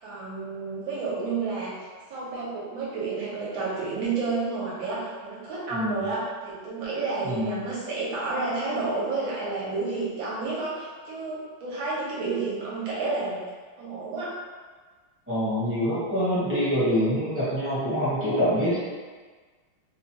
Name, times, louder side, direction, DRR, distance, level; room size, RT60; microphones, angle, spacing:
voice 1, 0.0-1.7 2.1-13.4 13.8-14.3, right 3 dB, 80° right, -7 dB, 1.7 m, -30 dB
voice 2, 5.7-6.1 7.2-7.5 15.3-18.8, equal, 10° right, -12 dB, 0.8 m, -25 dB
4.1 x 2.4 x 2.9 m, 1.4 s
omnidirectional pair, 2.2 m